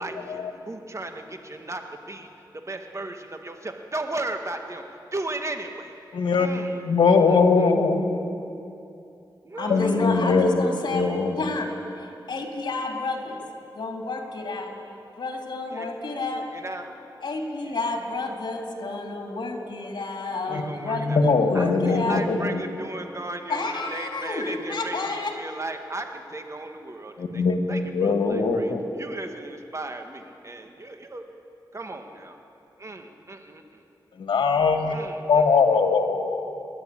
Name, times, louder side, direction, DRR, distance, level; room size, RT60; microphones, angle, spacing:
voice 1, 0.0-2.3 2.7-4.8 5.1-5.9 6.4-6.8 7.1-7.7 9.4-9.8 15.7-16.9 17.6-17.7 20.5-21.2 21.5-27.4 27.7-31.2 31.7-32.4 32.8-33.8 34.9-35.6, right 2 dB, 35° right, 5 dB, 1.9 m, -36 dB
voice 2, 6.1-8.2 9.7-10.6 10.9-11.4 20.5-20.6 20.9-22.6 27.2-28.8 34.2-34.9 35.3-36.4, left 4 dB, 85° left, 5 dB, 1.8 m, -21 dB
voice 3, 9.6-11.0 11.4-11.7 12.0-13.4 13.7-14.7 15.2-16.5 17.2-21.1 21.4-22.2 23.5-25.4, left 3 dB, 65° left, 1 dB, 3.7 m, -30 dB
29.0 x 11.0 x 8.8 m, 2.8 s
cardioid pair, 60°, 8 cm